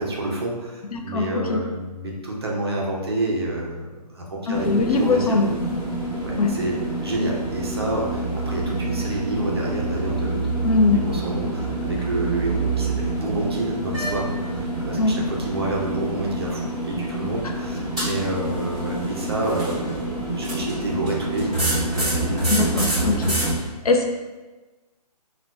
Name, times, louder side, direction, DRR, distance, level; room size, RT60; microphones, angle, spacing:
voice 1, 0.0-5.4 6.2-10.6 10.9-22.4, right 2 dB, 40° right, -2 dB, 0.5 m, -29 dB
voice 2, 0.9-1.6 4.5-5.7 6.4-6.6 10.6-11.1 15.0-15.2 22.5-23.4 23.8-24.1, left 3 dB, 60° left, 3 dB, 0.4 m, -21 dB
sound 1, 4.5-23.6, right 2 dB, ahead, 0.8 m, -27 dB
3.8 x 2.2 x 2.2 m, 1.2 s
hypercardioid pair, 170°, 21 cm